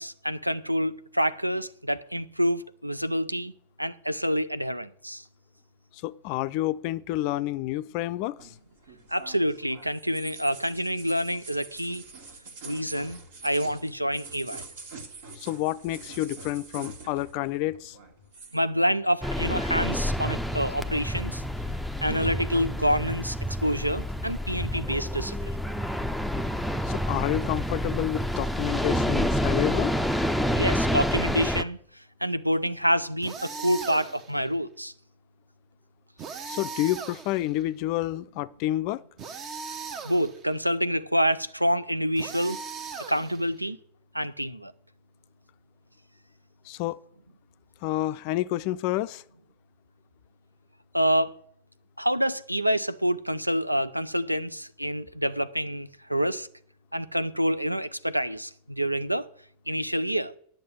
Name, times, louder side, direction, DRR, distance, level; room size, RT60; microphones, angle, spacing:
voice 1, 0.0-3.5 3.8-5.2 9.1-12.0 12.6-14.6 18.5-21.4 22.0-25.6 30.6-31.8 32.2-34.9 40.0-42.6 43.1-43.8 44.1-44.7 50.9-51.3 52.0-56.5 56.9-59.3 59.7-60.3, equal, 90° right, 0.4 m, -27 dB
voice 2, 6.0-8.5 15.4-18.0 26.8-30.0 36.5-39.0 46.7-47.0 47.8-49.2, left 15 dB, 45° left, 0.4 m, -29 dB
sound 1, 8.4-17.5 17.7-18.6, right 3 dB, 60° right, 1.7 m, -45 dB
sound 2, 19.2-31.6, equal, ahead, 0.6 m, -28 dB
sound 3, 33.2-34.4 36.2-37.6 39.2-40.5 42.2-43.6, right 5 dB, 35° right, 0.9 m, -38 dB
10.0 x 6.6 x 8.8 m
figure-of-eight pair, 90°, 0 cm